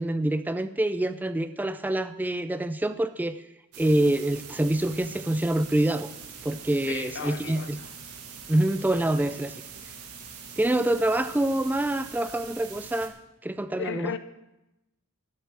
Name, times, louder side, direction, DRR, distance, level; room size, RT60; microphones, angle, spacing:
voice 1, 0.0-3.4 3.8-6.1 6.4-7.8 8.5-9.6 10.6-13.1 13.4-14.2, right 1 dB, 10° right, 0.3 m, -26 dB
sound 1, 3.7-13.1, right 6 dB, 80° right, 1.6 m, -43 dB
voice 2, 6.9-7.7 13.8-14.2, left 6 dB, 55° left, 0.7 m, -34 dB
12.5 x 6.9 x 7.5 m
head